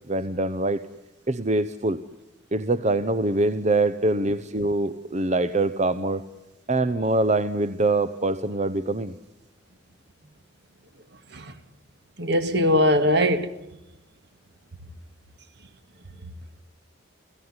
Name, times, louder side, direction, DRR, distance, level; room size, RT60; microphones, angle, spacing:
voice 1, 0.1-0.8 1.3-2.0 2.5-6.2 6.7-9.2, right 2 dB, 35° right, 0.8 m, -24 dB
voice 2, 12.2-13.5, equal, 55° right, 1.9 m, -20 dB
29.5 x 16.5 x 9.7 m
head